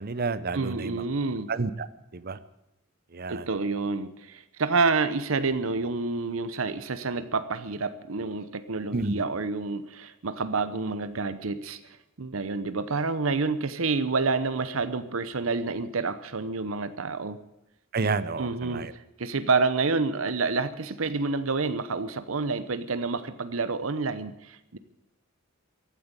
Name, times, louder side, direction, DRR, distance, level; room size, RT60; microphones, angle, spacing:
voice 1, 0.0-1.0 1.5-1.9 2.1-2.4 3.1-3.5 8.9-9.2 17.9-18.9, right 4 dB, 45° right, 15 dB, 0.8 m, -30 dB
voice 2, 0.5-1.5 3.3-11.8 12.2-17.4 18.4-24.8, right 4 dB, 80° right, 13 dB, 0.9 m, -28 dB
15.5 x 9.3 x 9.7 m, 0.90 s
head